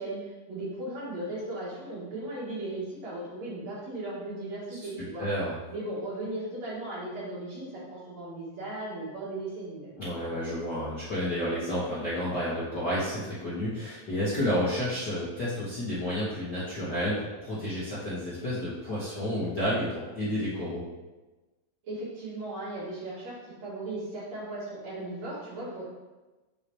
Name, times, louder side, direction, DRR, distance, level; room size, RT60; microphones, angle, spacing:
voice 1, 0.0-5.3 5.7-10.0 21.8-25.8, right 2 dB, 55° right, -7 dB, 3.2 m, -37 dB
voice 2, 5.2-5.6 10.0-20.8, equal, 45° left, -10 dB, 1.4 m, -30 dB
7.0 x 6.8 x 3.1 m, 1.2 s
omnidirectional pair, 3.9 m